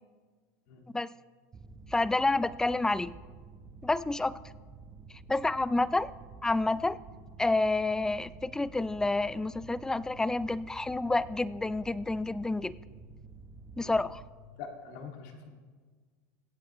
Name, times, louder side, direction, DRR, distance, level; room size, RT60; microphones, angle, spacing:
Mechanical fan, 1.5-14.3, right 4 dB, 20° right, 0.9 m, -50 dB
voice 1, 1.9-3.1 3.8-4.4 5.3-6.1 6.4-7.0 7.4-12.8 13.8-14.2, left 2 dB, 5° left, 18 dB, 0.3 m, -29 dB
voice 2, 14.6-15.5, left 5 dB, 65° left, 2 dB, 2.1 m, -44 dB
23.0 x 8.4 x 3.0 m, 1.5 s
supercardioid pair, 110°, 9 cm